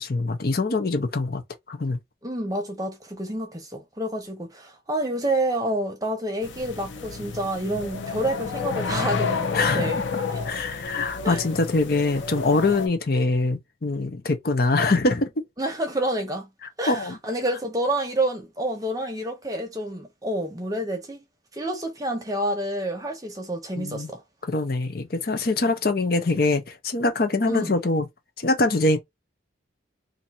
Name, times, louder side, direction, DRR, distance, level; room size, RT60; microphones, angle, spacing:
voice 1, 0.0-1.4 1.7-2.0 9.5-15.3 16.9-17.2 23.8-24.1 24.5-28.1 28.4-29.0, left 3 dB, 50° left, 0.7 m, -24 dB
voice 2, 2.2-10.0 10.3-10.4 11.2-11.4 15.6-16.5 16.8-21.2 21.5-24.2 27.4-27.7, right 1 dB, 20° right, 0.9 m, -28 dB
sound 1, 6.4-12.9, left 5 dB, 85° left, 0.7 m, -30 dB
2.7 x 2.6 x 4.2 m
head